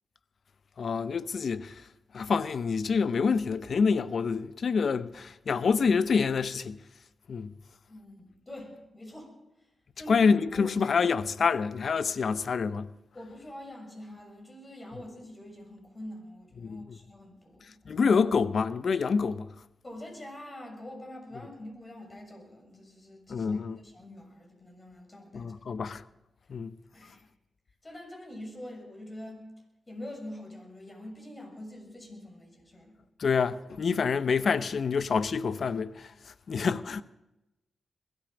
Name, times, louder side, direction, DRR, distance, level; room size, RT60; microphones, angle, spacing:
voice 1, 0.8-1.7 2.1-6.8 7.3-7.5 10.1-12.9 16.6-17.0 17.9-19.5 23.3-23.8 25.3-26.0 26.5-26.7 33.2-36.1 36.5-37.0, left 5 dB, 65° left, 0.7 m, -27 dB
voice 2, 7.9-9.4 10.0-11.0 13.1-18.0 19.8-23.5 23.8-25.5 26.9-27.3 27.8-29.5 29.9-32.9, left 1 dB, 30° left, 6.6 m, -45 dB
21.5 x 12.0 x 5.2 m
supercardioid pair, 50°, 0 cm